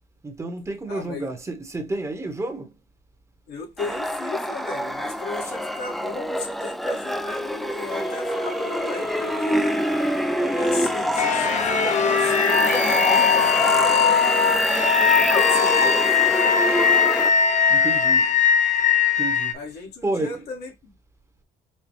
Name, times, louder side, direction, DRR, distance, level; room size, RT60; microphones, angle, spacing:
voice 1, 0.2-2.7 5.4-5.6 17.7-18.3 19.2-19.6 20.0-20.3, right 2 dB, 15° right, 1.0 m, -30 dB
voice 2, 0.9-1.3 3.5-9.8 10.5-14.0 15.2-16.5 19.5-20.7, left 4 dB, 80° left, 1.8 m, -35 dB
sound 1, 3.8-17.3, equal, ahead, 0.4 m, -26 dB
sound 2, 7.9-18.1, left 2 dB, 35° left, 1.1 m, -33 dB
sound 3, 11.2-19.5, left 7 dB, 50° left, 0.6 m, -20 dB
5.5 x 2.3 x 3.0 m
cardioid pair, 130°, 16 cm